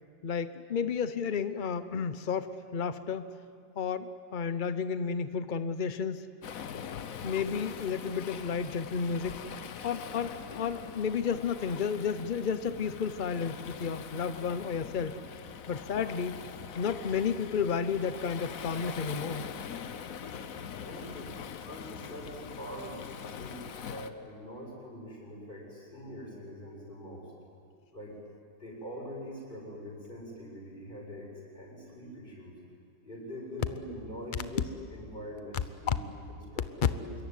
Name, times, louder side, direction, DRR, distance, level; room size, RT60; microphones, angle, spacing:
voice 1, 0.2-3.3 3.8-6.3 7.2-9.5 9.8-15.2 15.7-16.4 16.8-19.4, left 6 dB, 75° left, 11 dB, 0.4 m, -32 dB
Waves surf, 6.4-24.1, left 7 dB, 55° left, 1.2 m, -43 dB
voice 2, 20.8-21.3 21.7-23.0 23.3-27.3 27.9-28.2 28.6-32.6 33.0-37.2, equal, 25° left, -2 dB, 7.4 m, -43 dB
26.0 x 22.0 x 9.6 m, 2.2 s
omnidirectional pair, 2.1 m